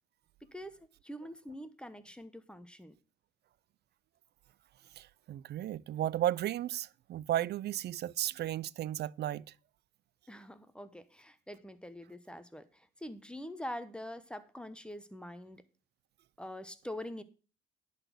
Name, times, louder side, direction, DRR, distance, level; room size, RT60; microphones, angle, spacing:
voice 1, 1.0-2.9 10.3-15.6 16.4-17.2, left 1 dB, 5° left, 0.9 m, -44 dB
voice 2, 5.0-9.4, right 12 dB, 55° right, 0.4 m, -34 dB
11.0 x 4.1 x 6.7 m
cardioid pair, 90°, 20 cm